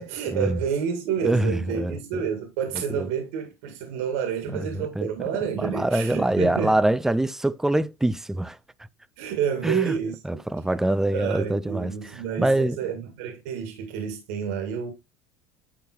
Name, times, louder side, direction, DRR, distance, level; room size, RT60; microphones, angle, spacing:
voice 1, 0.0-6.8 9.2-10.2 11.1-14.9, right 7 dB, 80° right, 2.2 m, -29 dB
voice 2, 1.2-2.0 2.9-3.1 4.5-5.1 5.6-8.6 9.6-9.9 10.2-12.8, right 1 dB, 5° right, 0.5 m, -24 dB
10.5 x 3.8 x 4.5 m
supercardioid pair, 120°, 7 cm